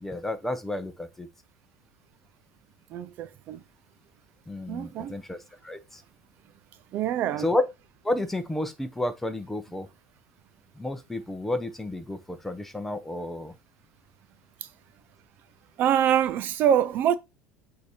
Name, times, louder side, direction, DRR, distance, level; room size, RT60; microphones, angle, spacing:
voice 1, 0.0-1.3 4.5-5.4 5.6-6.0 7.4-7.6 8.0-9.9 10.8-13.5, left 2 dB, 5° left, 0.7 m, -31 dB
voice 2, 2.9-3.6 4.7-5.1 6.9-7.5 14.6-14.7 15.8-17.1, right 10 dB, 40° right, 0.4 m, -25 dB
8.1 x 2.8 x 4.2 m
cardioid pair, 160°, 5 cm